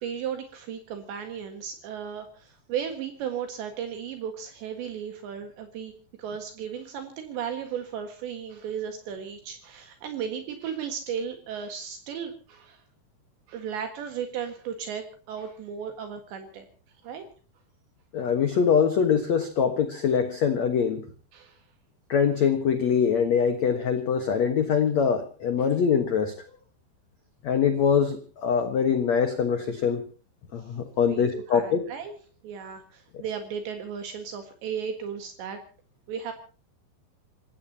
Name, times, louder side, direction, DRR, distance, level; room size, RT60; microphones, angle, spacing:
voice 1, 0.0-5.9 6.2-12.8 13.5-16.7 17.0-17.2 21.3-21.6 31.0-32.2 32.4-35.6 36.1-36.3, right 7 dB, 70° right, 6 dB, 3.8 m, -35 dB
voice 2, 18.1-21.0 22.1-26.3 27.4-30.0 30.5-31.9, left 7 dB, 80° left, 8 dB, 1.5 m, -23 dB
28.5 x 16.0 x 2.9 m, 0.39 s
omnidirectional pair, 5.5 m